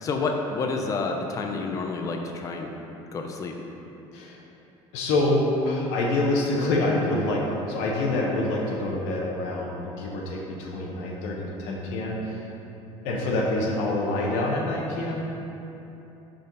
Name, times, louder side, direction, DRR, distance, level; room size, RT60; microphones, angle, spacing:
voice 1, 0.0-2.7 3.1-3.5, left 3 dB, 30° left, 3 dB, 0.6 m, -29 dB
voice 2, 4.9-12.4 13.0-15.2, left 2 dB, 90° left, -3 dB, 1.0 m, -26 dB
5.2 x 4.4 x 5.3 m, 3.0 s
cardioid pair, 155°, 11 cm